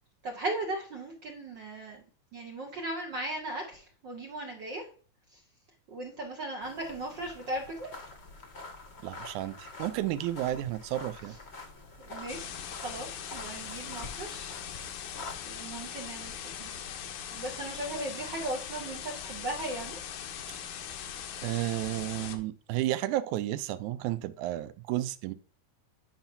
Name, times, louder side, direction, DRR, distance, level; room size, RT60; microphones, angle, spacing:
voice 1, 0.2-2.0 2.3-4.9 5.3-5.4 5.9-7.9 11.3-11.4 12.0-12.6 12.8-15.1 15.4-16.3 16.6-16.7 17.3-20.0, right 1 dB, 65° right, 1.1 m, -37 dB
sound 1, 6.6-15.4, left 3 dB, 45° left, 0.8 m, -46 dB
voice 2, 9.0-11.4 20.5-20.7 21.4-25.3, right 14 dB, 85° right, 2.0 m, -32 dB
sound 2, 12.3-22.4, left 8 dB, 80° left, 2.3 m, -40 dB
9.6 x 5.7 x 2.7 m
omnidirectional pair, 3.5 m